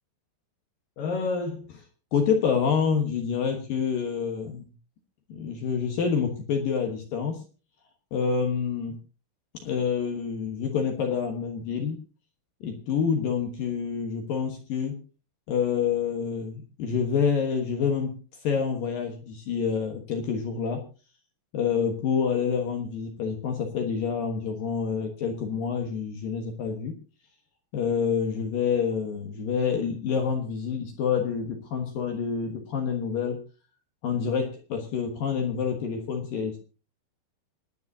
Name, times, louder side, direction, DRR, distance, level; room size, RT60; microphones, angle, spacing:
voice 1, 1.0-1.8 2.1-4.7 5.3-7.4 8.1-9.0 9.6-12.0 12.6-15.0 15.5-18.2 18.4-20.8 21.5-26.9 27.7-33.4 34.0-36.6, left 6 dB, 65° left, 3 dB, 2.4 m, -27 dB
25.5 x 10.5 x 2.8 m, 0.35 s
omnidirectional pair, 5.8 m